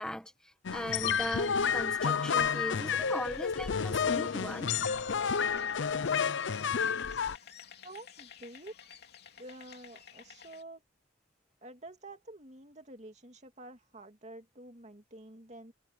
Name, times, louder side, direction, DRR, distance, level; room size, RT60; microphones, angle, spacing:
voice 1, 0.0-4.7, equal, 5° left, 1.0 m, -39 dB
sound 1, 0.6-7.4, left 6 dB, 80° left, 0.6 m, -30 dB
Piano, 1.0-6.1 6.4-6.6 7.3-7.7, left 11 dB, 40° left, 5.4 m, -47 dB
sound 2, 2.2-10.6, left 7 dB, 60° left, 3.1 m, -52 dB
voice 2, 7.8-8.7 9.4-10.8 11.6-15.7, right 1 dB, 40° right, 2.4 m, -49 dB
head